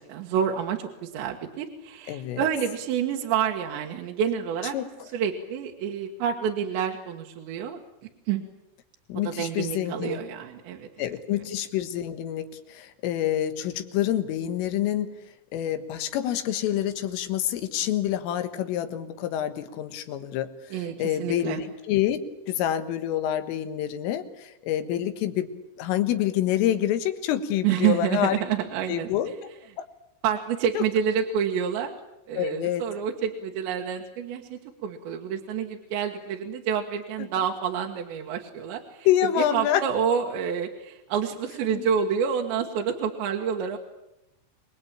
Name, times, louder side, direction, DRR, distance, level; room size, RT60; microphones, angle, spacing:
voice 1, 0.1-4.8 5.1-7.8 8.3-8.4 9.3-10.9 20.7-21.6 27.6-29.1 30.2-31.9 32.3-39.1 39.5-43.8, right 8 dB, 70° right, 1 dB, 3.5 m, -28 dB
voice 2, 2.1-2.4 4.7-5.1 9.1-10.2 11.0-15.1 15.5-22.2 22.5-28.4 28.9-29.3 29.8-29.9 30.7-30.8 32.4-32.9 37.2-37.3 39.1-39.8 41.7-41.9, left 11 dB, 85° left, 9 dB, 4.1 m, -27 dB
27.5 x 21.0 x 8.9 m, 0.91 s
omnidirectional pair, 5.7 m